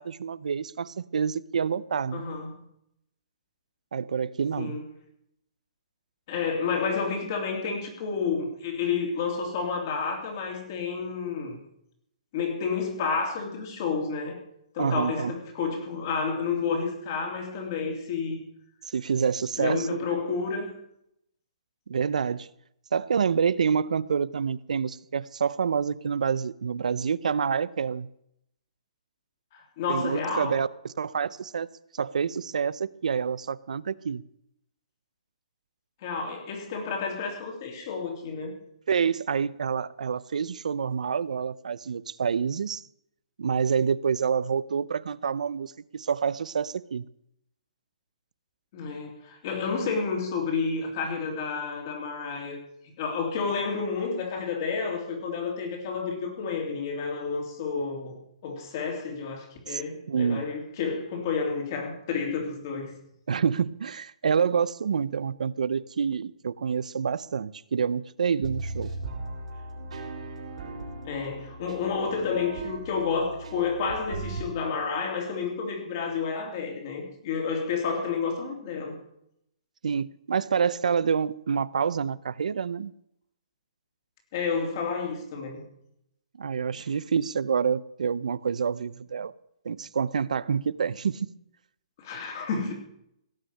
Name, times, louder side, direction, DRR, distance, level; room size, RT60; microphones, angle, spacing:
voice 1, 0.0-2.3 3.9-4.8 14.8-15.3 18.8-20.2 21.9-22.5 22.9-28.1 29.9-31.7 31.9-34.2 38.9-42.8 43.4-47.0 59.7-59.8 60.1-60.4 63.3-68.9 79.8-82.9 86.4-89.3 89.6-91.3, right 6 dB, 90° right, 0.6 m, -27 dB
voice 2, 2.1-2.5 4.6-4.8 6.3-11.6 12.3-14.4 14.7-18.4 19.6-20.7 29.5-30.5 36.0-38.5 48.7-52.6 53.0-62.9 71.0-79.0 84.3-85.6 92.0-92.7, left 5 dB, 30° left, 2.9 m, -30 dB
sound 1, 68.4-74.4, right 3 dB, 60° right, 3.6 m, -38 dB
17.0 x 6.4 x 8.5 m
hypercardioid pair, 180°, 4 cm